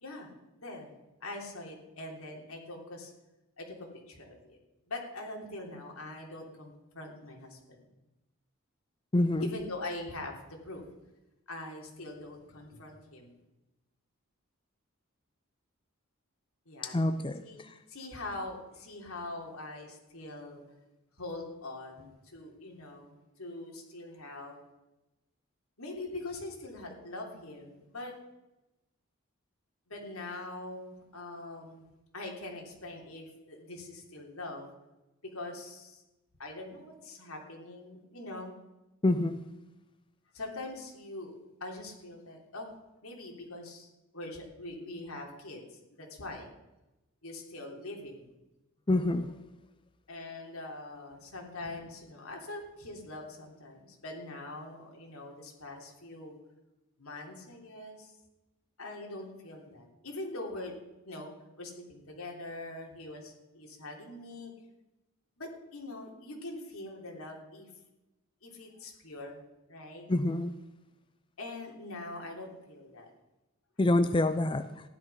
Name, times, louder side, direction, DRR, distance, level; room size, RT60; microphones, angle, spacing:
voice 1, 0.6-0.9 1.2-3.1 3.6-3.8 4.1-4.6 4.9-7.9 9.4-10.8 11.5-13.3 16.7-17.0 17.4-17.6 17.9-20.6 21.2-24.6 25.8-28.2 29.9-31.8 32.1-34.7 35.2-36.0 36.4-38.5 40.3-41.3 41.6-42.7 43.0-46.5 47.2-48.3 50.1-56.4 57.0-58.1 58.8-60.7 61.0-61.3 61.6-64.5 65.4-67.7 68.4-69.4 69.7-70.1 71.4-73.1, left 2 dB, 85° left, 1 dB, 3.3 m, -43 dB
voice 2, 9.1-9.5 16.9-17.4 39.0-39.4 48.9-49.3 70.1-70.5 73.8-74.7, left 2 dB, 25° left, 10 dB, 0.5 m, -26 dB
15.0 x 11.0 x 5.7 m, 1.0 s
head